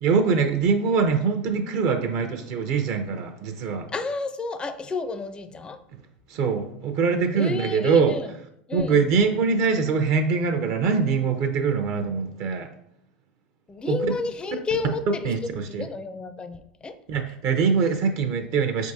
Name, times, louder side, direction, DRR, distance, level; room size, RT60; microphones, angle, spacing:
voice 1, 0.0-3.9 6.3-8.2 8.7-12.7 13.9-14.0 15.2-15.9 17.1-18.9, right 5 dB, 50° right, 6 dB, 0.5 m, -23 dB
voice 2, 3.9-5.8 7.3-8.3 8.7-9.0 13.7-15.3 15.7-16.9, left 3 dB, 15° left, 9 dB, 0.4 m, -31 dB
4.5 x 3.5 x 2.7 m, 0.72 s
hypercardioid pair, 100°, 6 cm